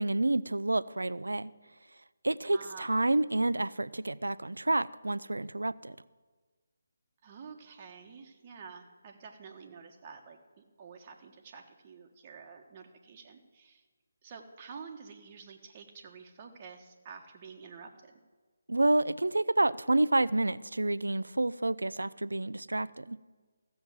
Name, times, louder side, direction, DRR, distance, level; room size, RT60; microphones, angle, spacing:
voice 1, 0.0-1.5 2.2-6.0 18.7-23.2, right 2 dB, 85° right, 18 dB, 0.4 m, -29 dB
voice 2, 2.4-3.0 7.2-13.8 14.2-18.2, right 5 dB, 30° right, 2 dB, 1.4 m, -49 dB
14.5 x 7.0 x 7.7 m, 1.4 s
figure-of-eight pair, 150°, 0 cm